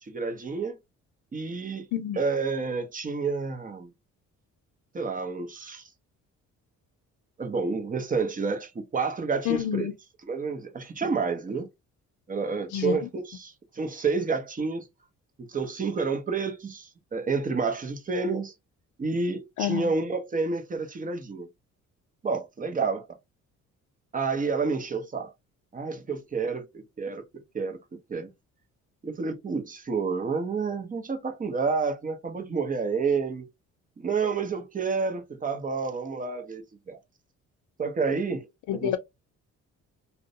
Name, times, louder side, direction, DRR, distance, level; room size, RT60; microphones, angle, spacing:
voice 1, 0.0-0.8 1.3-1.9 2.2-3.9 4.9-5.8 7.4-9.9 10.3-11.7 12.3-14.9 15.4-18.5 19.0-21.5 22.2-23.1 24.1-25.3 25.7-27.8 28.1-28.3 29.0-33.5 34.0-37.0 37.8-38.5 38.7-39.0, right 4 dB, 25° right, 0.6 m, -29 dB
voice 2, 9.4-9.9 12.7-13.1 19.6-19.9 38.7-39.0, left 11 dB, 80° left, 0.5 m, -28 dB
2.5 x 2.1 x 2.6 m
cardioid pair, 90°, 30 cm